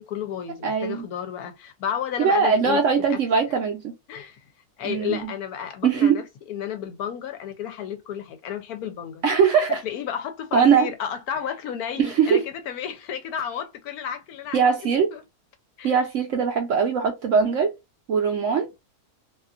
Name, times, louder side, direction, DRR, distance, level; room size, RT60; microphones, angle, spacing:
voice 1, 0.0-3.2 4.1-4.5 4.8-9.2 9.7-14.6 15.1-15.2 15.8-15.9, left 9 dB, 70° left, 1.1 m, -32 dB
voice 2, 0.6-1.1 2.2-3.9 4.8-5.3 5.8-6.2 9.2-9.8 10.5-10.9 12.0-12.4 14.5-15.1 15.8-17.7 18.1-18.8, right 6 dB, 65° right, 0.8 m, -21 dB
2.7 x 2.4 x 2.4 m
omnidirectional pair, 1.7 m